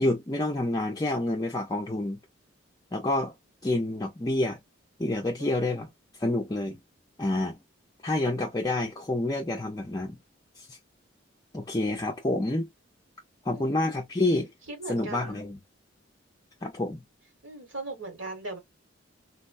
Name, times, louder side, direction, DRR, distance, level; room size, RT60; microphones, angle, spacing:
voice 1, 0.0-2.2 2.9-3.3 3.6-4.6 5.0-5.9 6.2-6.8 7.2-7.6 8.0-10.2 10.6-10.8 11.5-12.7 13.4-14.5 14.9-15.6 16.6-17.0, left 2 dB, 20° left, 0.5 m, -28 dB
voice 2, 5.4-5.8 13.5-14.0 14.7-15.4 17.4-18.6, right 2 dB, 75° right, 1.6 m, -39 dB
4.0 x 2.2 x 2.5 m
head